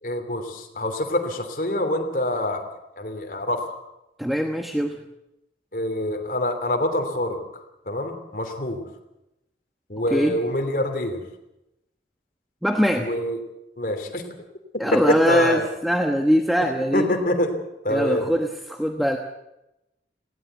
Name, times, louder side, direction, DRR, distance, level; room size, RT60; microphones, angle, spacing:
voice 1, 0.0-2.6 3.0-3.8 5.7-7.4 7.9-8.8 9.9-11.2 13.0-13.4 13.8-14.2 14.7-15.7 16.9-17.5 17.8-18.3, left 1 dB, 50° left, 5 dB, 3.1 m, -25 dB
voice 2, 4.2-5.0 10.1-10.3 12.6-13.1 14.8-17.1 17.9-19.2, equal, ahead, 3 dB, 1.1 m, -22 dB
19.0 x 17.0 x 8.2 m, 0.91 s
head